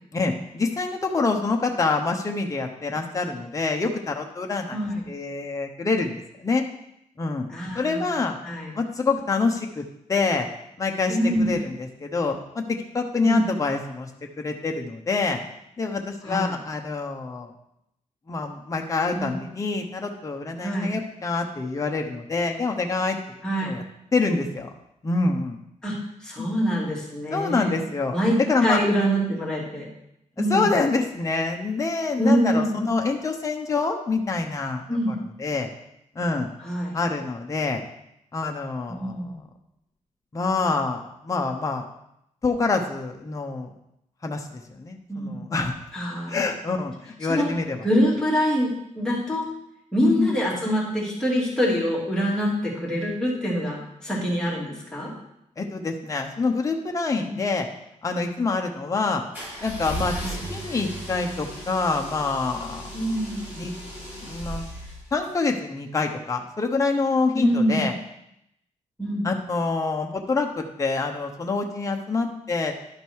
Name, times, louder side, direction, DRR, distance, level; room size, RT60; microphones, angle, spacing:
voice 1, 0.1-4.8 5.1-6.6 7.2-7.5 7.7-8.4 8.7-10.5 10.8-14.1 14.4-15.4 15.8-17.5 18.3-23.2 23.6-23.8 24.1-24.7 25.0-25.6 26.4-26.5 27.3-28.2 28.5-28.8 30.4-35.7 36.1-36.5 36.9-37.8 38.3-39.3 40.3-41.8 42.4-43.7 44.2-45.8 46.3-47.9 50.0-50.3 55.6-57.7 58.0-59.2 59.6-62.9 63.5-63.7 64.2-64.6 65.1-67.9 69.2-72.7, left 3 dB, 25° left, 2 dB, 0.9 m, -26 dB
voice 2, 7.5-8.1 8.4-8.7 11.1-11.5 13.2-13.4 16.2-16.6 19.1-19.4 20.6-20.9 23.4-23.7 25.8-27.8 28.1-28.4 28.6-29.9 30.4-30.6 32.2-32.9 34.9-35.1 36.6-36.9 38.9-39.4 45.1-45.4 45.9-46.4 47.3-47.5 47.8-49.4 49.9-55.1 57.2-57.4 60.2-60.4 62.9-63.5 67.3-67.9 69.0-69.3, equal, 5° left, -5 dB, 2.8 m, -25 dB
sound 1, 59.3-65.3, right 1 dB, 15° right, 4.0 m, -36 dB
11.5 x 5.2 x 4.7 m, 0.79 s
wide cardioid pair, 135°, 13 cm